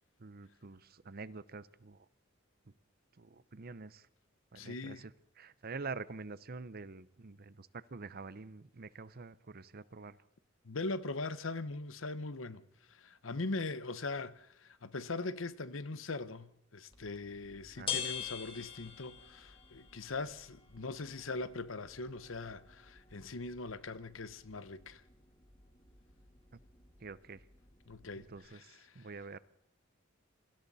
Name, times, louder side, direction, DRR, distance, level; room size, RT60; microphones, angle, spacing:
voice 1, 0.2-2.1 3.2-4.1 4.5-5.1 5.4-10.2 17.8-18.0 27.0-27.4 28.2-29.4, right 4 dB, 50° right, 0.8 m, -46 dB
voice 2, 4.5-5.1 10.6-25.0 27.9-29.1, left 3 dB, 75° left, 1.0 m, -41 dB
sound 1, 16.9-28.4, left 7 dB, 25° left, 2.8 m, -47 dB
27.5 x 24.0 x 4.2 m
head